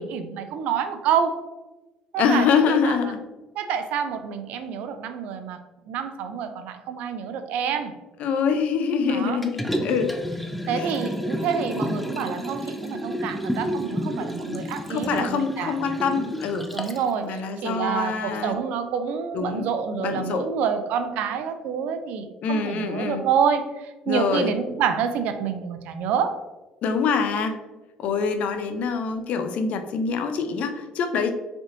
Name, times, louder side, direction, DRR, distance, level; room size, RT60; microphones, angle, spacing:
voice 1, 0.0-1.4 2.1-3.1 3.6-5.6 5.9-7.9 9.1-9.4 10.7-15.8 16.7-26.4, right 7 dB, 75° right, 8 dB, 0.4 m, -27 dB
voice 2, 2.2-3.3 8.2-10.2 10.7-10.9 14.9-17.0 17.2-18.6 19.3-19.7 20.0-20.5 22.4-23.2 24.1-24.5 26.8-27.6 28.0-31.3, left 5 dB, 65° left, 8 dB, 0.5 m, -25 dB
Liquid, 9.4-17.1 17.5-17.6, equal, 5° left, 0.4 m, -30 dB
3.9 x 3.4 x 2.6 m, 1.1 s
supercardioid pair, 80°, 3 cm